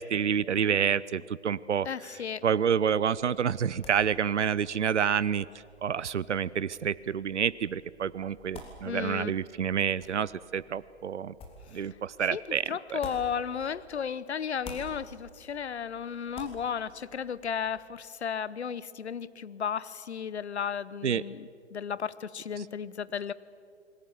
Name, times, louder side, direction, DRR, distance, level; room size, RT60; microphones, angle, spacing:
voice 1, 0.0-1.9 2.4-5.5 5.8-11.3 11.7-13.0 21.0-21.2, right 8 dB, 75° right, 20 dB, 0.7 m, -28 dB
voice 2, 1.8-2.4 8.9-9.3 12.3-12.4 12.7-23.3, left 7 dB, 65° left, 18 dB, 0.9 m, -34 dB
sound 1, 2.9-14.1 14.4-17.8, left 2 dB, 15° left, 3.4 m, -51 dB
28.5 x 21.0 x 7.1 m, 2.5 s
figure-of-eight pair, 120°, 35 cm